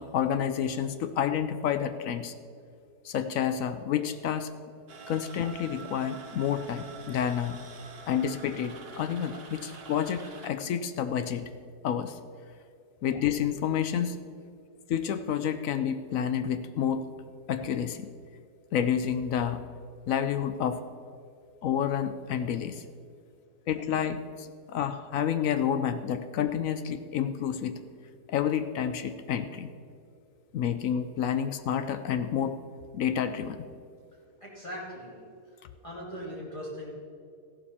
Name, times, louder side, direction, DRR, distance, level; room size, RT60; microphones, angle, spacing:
voice 1, 0.0-2.3 3.0-4.5 5.1-7.6 8.1-11.5 11.8-12.2 13.0-14.2 14.9-17.1 17.5-18.1 18.7-19.6 20.1-20.8 21.6-22.8 23.7-27.8 28.3-29.7 30.5-32.6 32.9-33.6, left 8 dB, 65° left, 10 dB, 0.9 m, -29 dB
sound 1, 4.9-10.5, right 5 dB, 45° right, 1.1 m, -46 dB
voice 2, 34.4-35.2 35.8-36.9, equal, 20° left, -5 dB, 2.4 m, -39 dB
14.0 x 12.0 x 4.3 m, 2.4 s
omnidirectional pair, 1.7 m